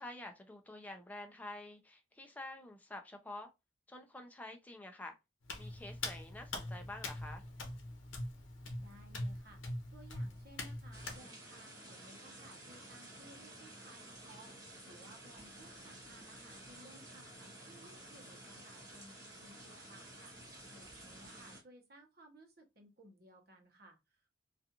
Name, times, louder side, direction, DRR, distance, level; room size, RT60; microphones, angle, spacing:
voice 1, 0.0-3.5 3.9-5.1 5.6-7.4, left 1 dB, 10° left, 0.4 m, -48 dB
Hands, 5.4-11.2, left 2 dB, 80° left, 0.7 m, -43 dB
voice 2, 8.8-9.6 9.9-20.3 20.7-24.3, right 1 dB, 50° right, 0.8 m, -60 dB
sound 1, 10.9-21.6, right 1 dB, 20° right, 1.0 m, -53 dB
2.4 x 2.3 x 2.7 m
head